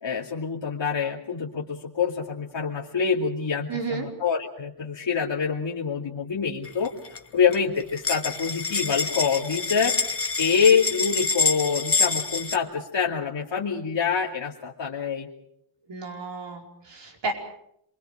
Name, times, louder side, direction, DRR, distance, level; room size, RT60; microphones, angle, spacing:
voice 1, 0.0-6.9 7.3-9.9 10.4-15.3, left 6 dB, 65° left, -2 dB, 2.7 m, -26 dB
voice 2, 3.7-4.1 15.9-17.3, right 3 dB, 60° right, 2 dB, 4.9 m, -32 dB
sound 1, 6.7-7.2 7.5-12.6, left 4 dB, 30° left, 1.4 m, -27 dB
28.0 x 23.5 x 5.1 m, 0.73 s
wide cardioid pair, 140°, 47 cm